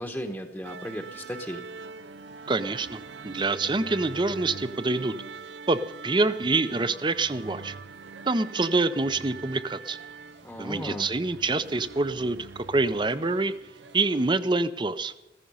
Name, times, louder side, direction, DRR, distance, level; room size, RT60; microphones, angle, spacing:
voice 1, 0.0-1.6 10.4-11.1, equal, 5° left, 3 dB, 1.0 m, -35 dB
sound 1, 0.6-14.4, right 5 dB, 90° right, 0.6 m, -43 dB
voice 2, 2.5-5.1 5.7-7.8 8.3-10.0 10.6-13.5 13.9-15.2, right 3 dB, 25° right, 13 dB, 0.6 m, -26 dB
15.0 x 15.0 x 5.5 m, 1.0 s
head